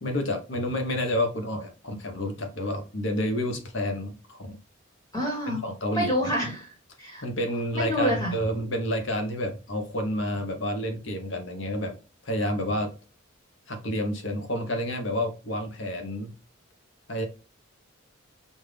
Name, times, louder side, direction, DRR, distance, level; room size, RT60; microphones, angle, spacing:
voice 1, 0.0-4.6 5.5-6.1 7.2-12.0 12.2-12.9 13.7-16.3 17.1-17.3, left 1 dB, 60° left, 5 dB, 1.0 m, -29 dB
voice 2, 5.1-5.6 5.9-6.7 7.0-7.2 7.7-8.3, equal, 20° left, -2 dB, 1.5 m, -27 dB
5.4 x 2.7 x 3.3 m, 0.34 s
head